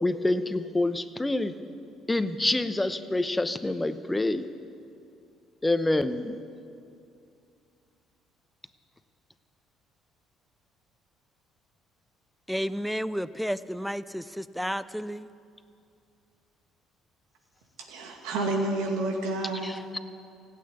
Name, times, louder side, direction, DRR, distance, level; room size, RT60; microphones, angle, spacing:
voice 1, 0.0-1.6 2.1-4.5 5.6-6.4 19.6-20.0, left 2 dB, 15° left, 0.9 m, -27 dB
voice 2, 12.5-15.3, equal, ahead, 0.5 m, -32 dB
voice 3, 17.9-19.7, right 2 dB, 80° right, 2.3 m, -29 dB
16.0 x 8.6 x 9.6 m
supercardioid pair, 65°, 0 cm